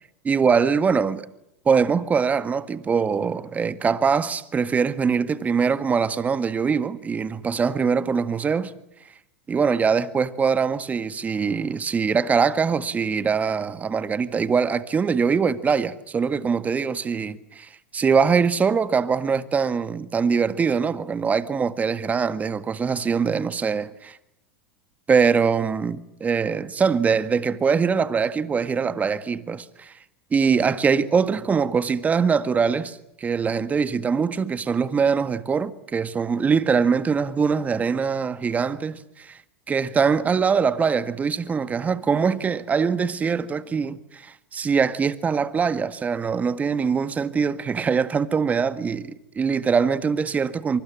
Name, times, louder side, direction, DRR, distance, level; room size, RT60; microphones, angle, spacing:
voice 1, 0.2-1.3 1.6-8.7 9.5-23.9 25.1-29.9 30.3-39.4 39.7-50.8, right 6 dB, 20° right, 1.7 m, -23 dB
26.0 x 24.0 x 7.5 m
hypercardioid pair, 100°, 7 cm